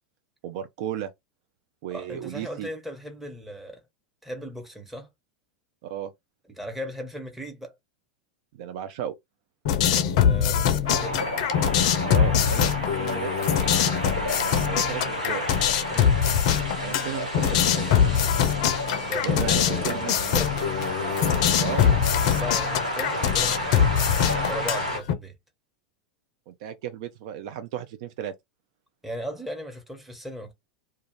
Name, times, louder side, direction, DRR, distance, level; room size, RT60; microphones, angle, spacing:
voice 1, 0.4-1.1 1.8-2.7 5.8-6.1 8.5-9.1 12.1-13.3 14.4-15.4 16.8-18.1 19.2-20.1 21.5-21.9 26.5-28.3, right 10 dB, 55° right, 0.4 m, -34 dB
voice 2, 1.9-3.8 4.2-5.1 6.5-7.8 9.9-11.2 15.9-16.2 19.0-20.8 22.4-23.9 24.5-25.3 29.0-30.5, equal, 5° right, 0.9 m, -37 dB
sound 1, 9.7-25.1, left 8 dB, 60° left, 0.4 m, -23 dB
sound 2, 10.9-25.0, left 1 dB, 80° right, 1.2 m, -31 dB
2.3 x 2.3 x 3.0 m
figure-of-eight pair, 90°, 4 cm